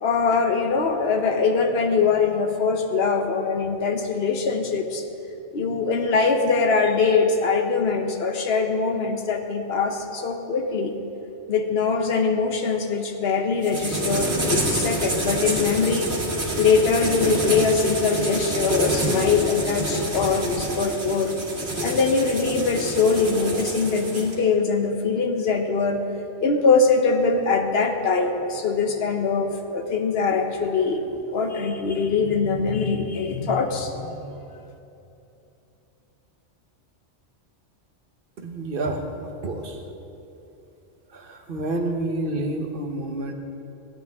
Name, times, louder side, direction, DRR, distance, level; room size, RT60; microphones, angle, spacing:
voice 1, 0.0-5.0 5.5-11.0 11.5-16.1 16.6-21.4 21.8-26.0 26.4-31.0 31.3-34.4, left 4 dB, 60° left, 5 dB, 1.1 m, -22 dB
sound 1, 13.6-24.3, right 1 dB, 65° right, 2.6 m, -27 dB
voice 2, 38.4-39.8 41.1-43.3, right 2 dB, 50° right, 4 dB, 1.1 m, -29 dB
16.5 x 9.4 x 3.5 m, 2.8 s
omnidirectional pair, 1.2 m